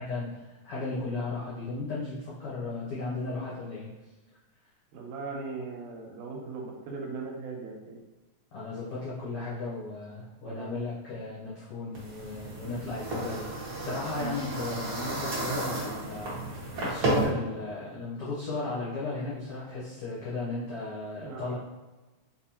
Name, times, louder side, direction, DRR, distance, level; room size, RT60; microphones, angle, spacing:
voice 1, 0.0-3.9 8.5-21.5, left 3 dB, 80° left, -8 dB, 1.2 m, -35 dB
voice 2, 4.9-8.0 10.4-10.7 21.2-21.5, right 4 dB, 90° right, 1 dB, 2.2 m, -39 dB
sound 1, 11.9-17.2, right 2 dB, 60° right, 1.6 m, -32 dB
5.2 x 2.4 x 2.8 m, 1.2 s
omnidirectional pair, 3.6 m